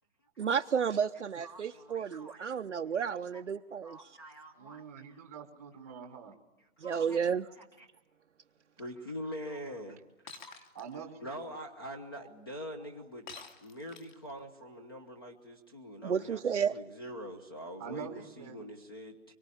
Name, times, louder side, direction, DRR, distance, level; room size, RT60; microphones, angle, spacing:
voice 1, 0.4-4.2 6.8-7.5 16.0-16.7, right 7 dB, 55° right, 4 dB, 0.9 m, -32 dB
voice 2, 1.4-2.6 3.1-3.4 3.8-5.3 6.8-7.2 7.6-7.9 8.8-10.0 10.2-10.7 10.9-13.3 13.6-19.3, equal, 15° left, 4 dB, 1.0 m, -45 dB
voice 3, 4.5-6.3 10.7-11.5 12.2-12.3 17.8-18.6, right 7 dB, 10° right, 5 dB, 1.2 m, -45 dB
Shatter, 10.3-10.8 13.3-14.3, left 4 dB, 35° left, 2.5 m, -48 dB
24.5 x 23.0 x 9.9 m, 1.0 s
hypercardioid pair, 175°, 43 cm